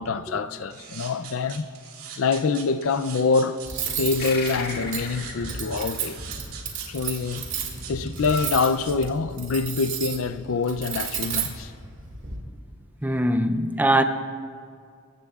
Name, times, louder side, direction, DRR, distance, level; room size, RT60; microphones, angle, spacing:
voice 1, 0.0-1.7 2.2-3.6 4.0-6.2 6.9-7.5 7.9-11.7, left 4 dB, 70° left, 0.5 m, -25 dB
sound 1, 0.7-9.1, right 8 dB, 85° right, 2.2 m, -41 dB
Cutlery silverware, 3.6-12.4, right 6 dB, 60° right, 2.1 m, -33 dB
sound 2, 4.2-7.2, left 4 dB, 45° left, 1.9 m, -37 dB
voice 2, 13.0-14.0, right 1 dB, 10° right, 0.5 m, -21 dB
27.0 x 15.5 x 2.4 m
head